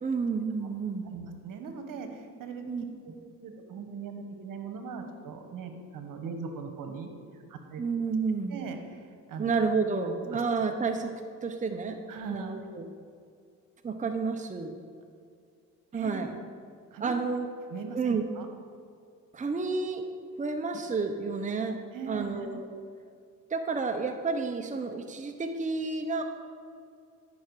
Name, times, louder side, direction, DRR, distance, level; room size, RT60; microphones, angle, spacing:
voice 1, 0.0-1.1 2.7-2.8 7.8-8.6 9.4-11.1 11.4-12.0 12.3-12.9 13.8-14.8 15.9-16.3 17.0-17.5 17.9-18.2 19.3-20.0 20.4-21.8 22.1-22.7 23.5-26.2, right 4 dB, 20° right, 5 dB, 0.8 m, -30 dB
voice 2, 1.1-2.6 3.0-3.1 3.4-7.8 8.5-9.5 10.3-10.4 12.1-12.6 15.9-16.2 16.9-17.1 17.7-18.5 21.9-22.6, right 5 dB, 65° right, 5 dB, 1.4 m, -40 dB
13.5 x 5.9 x 4.8 m, 2.4 s
supercardioid pair, 65°, 36 cm